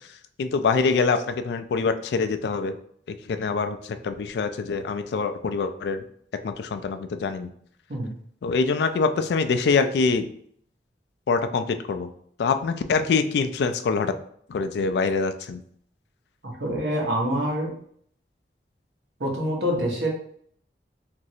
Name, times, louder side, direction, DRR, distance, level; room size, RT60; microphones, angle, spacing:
voice 1, 0.4-2.8 3.1-6.0 6.4-7.5 8.4-10.3 11.3-12.1 12.4-14.2 14.5-15.6, left 4 dB, 75° left, 9 dB, 0.3 m, -24 dB
voice 2, 16.4-17.7 19.2-20.1, equal, 80° right, -1 dB, 1.0 m, -26 dB
3.1 x 2.5 x 2.7 m, 0.63 s
head